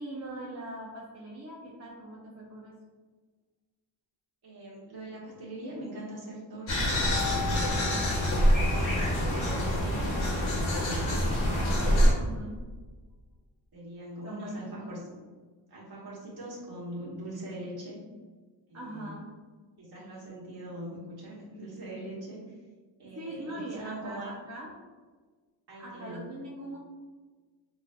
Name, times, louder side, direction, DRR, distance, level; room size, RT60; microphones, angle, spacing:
voice 1, 0.0-2.7 11.1-12.6 14.2-14.9 18.7-19.3 23.0-24.7 25.8-26.8, right 1 dB, 35° right, -6 dB, 0.6 m, -41 dB
voice 2, 4.4-7.1 7.7-12.0 13.7-15.2 15.7-18.0 18.7-19.2 19.8-22.4 23.0-24.4 25.7-26.3, right 1 dB, 55° right, -7 dB, 1.3 m, -42 dB
sound 1, 6.7-12.1, equal, 90° left, 0.9 m, -26 dB
Keyboard (musical), 7.0-9.7, left 7 dB, 80° right, 0.6 m, -39 dB
3.9 x 2.6 x 2.3 m, 1.4 s
wide cardioid pair, 100°, 46 cm